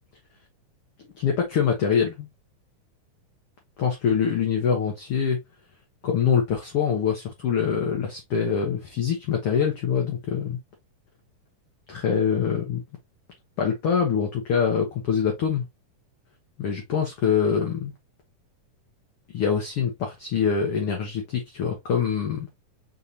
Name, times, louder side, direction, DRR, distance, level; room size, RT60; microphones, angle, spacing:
voice 1, 1.1-2.3 3.8-5.4 6.0-10.6 11.9-12.8 13.6-15.7 16.6-17.9 19.3-22.5, left 7 dB, 70° left, 1.4 m, -24 dB
5.3 x 3.7 x 2.7 m
omnidirectional pair, 3.8 m